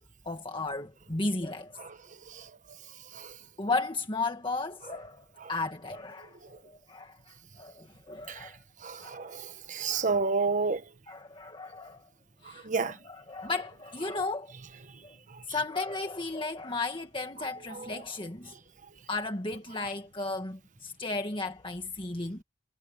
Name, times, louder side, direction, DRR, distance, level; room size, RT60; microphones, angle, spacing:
voice 1, 0.3-1.8 3.6-8.6 9.0-9.3 9.9-10.1 11.1-12.0 12.4-14.5 15.0-15.1 15.5-18.5 19.1-22.4, left 3 dB, 25° left, 1.7 m, -35 dB
voice 2, 8.8-10.8 12.6-13.0 17.7-17.9, right 4 dB, 40° right, 1.3 m, -30 dB
head